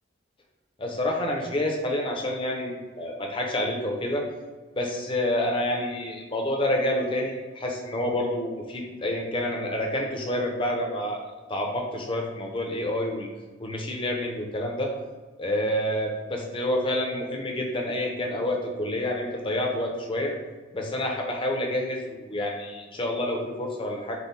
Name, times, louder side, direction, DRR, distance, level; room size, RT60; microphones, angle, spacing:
voice 1, 0.8-4.2 4.8-11.2 11.5-13.3 13.6-14.9 15.4-20.3 20.7-24.2, left 1 dB, 25° left, 0 dB, 0.6 m, -28 dB
5.5 x 2.2 x 4.0 m, 1.3 s
head